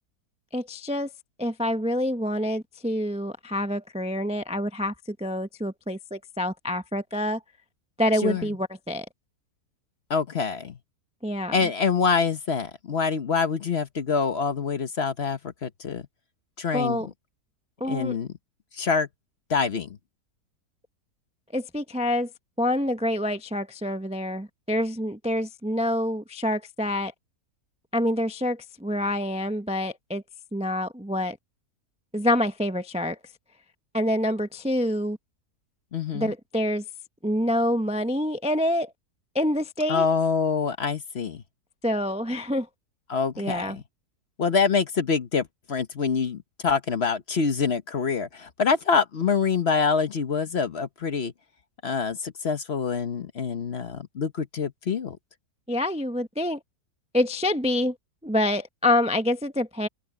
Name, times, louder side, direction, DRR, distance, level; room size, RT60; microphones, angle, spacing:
voice 1, 0.5-1.1 1.4-7.4 8.0-9.1 11.2-11.5 16.7-17.1 17.8-18.2 21.5-22.3 22.6-27.1 27.9-30.2 30.5-31.4 32.1-33.2 33.9-35.2 36.1-36.8 37.2-38.9 39.3-40.1 41.8-42.7 43.4-43.8 55.7-56.6 57.1-57.9 58.2-59.9, left 1 dB, 10° right, 0.4 m, -26 dB
voice 2, 10.1-10.8 11.5-16.0 16.6-17.1 17.9-18.3 18.7-19.1 19.5-19.9 35.9-36.3 39.9-41.4 43.1-43.8 44.4-51.3 51.8-55.2, left 5 dB, 45° left, 1.1 m, -25 dB
open air
omnidirectional pair, 1.7 m